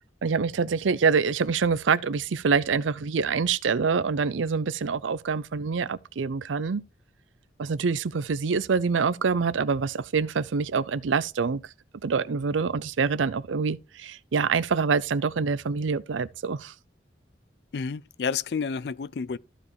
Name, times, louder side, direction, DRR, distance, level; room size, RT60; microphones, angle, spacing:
voice 1, 0.2-6.8 7.6-11.6 12.0-16.7, right 5 dB, 90° right, 0.5 m, -26 dB
voice 2, 17.7-19.4, left 5 dB, 60° left, 0.4 m, -30 dB
14.0 x 5.0 x 3.2 m
head